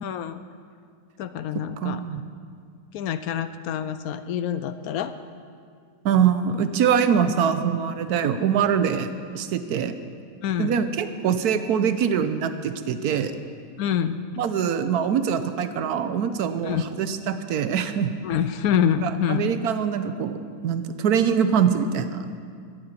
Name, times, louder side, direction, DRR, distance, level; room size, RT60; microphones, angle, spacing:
voice 1, 0.0-0.4 1.2-2.0 2.9-5.1 10.4-10.8 13.8-14.2 16.6-16.8 18.2-19.5, left 9 dB, 70° left, 12 dB, 0.8 m, -26 dB
voice 2, 1.5-2.2 6.0-9.1 9.3-10.0 10.6-13.3 14.4-18.1 19.0-20.4 20.6-22.4, right 7 dB, 70° right, 10 dB, 1.0 m, -23 dB
13.5 x 7.7 x 8.8 m, 2.2 s
omnidirectional pair, 2.0 m